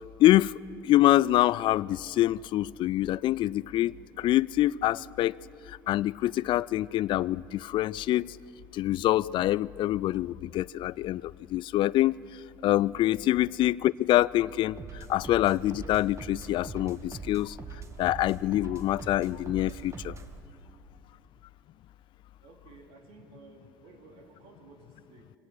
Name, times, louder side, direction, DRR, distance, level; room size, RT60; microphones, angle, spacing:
voice 1, 0.2-0.6 0.8-5.3 5.9-8.3 8.7-12.2 12.6-14.8 15.1-17.5 18.0-20.1, left 14 dB, 50° left, 0.4 m, -25 dB
sound 1, 14.8-20.4, right 4 dB, 30° right, 1.7 m, -42 dB
voice 2, 22.4-25.3, right 3 dB, 65° right, 2.9 m, -54 dB
25.0 x 17.0 x 6.3 m
hypercardioid pair, 70°, 10 cm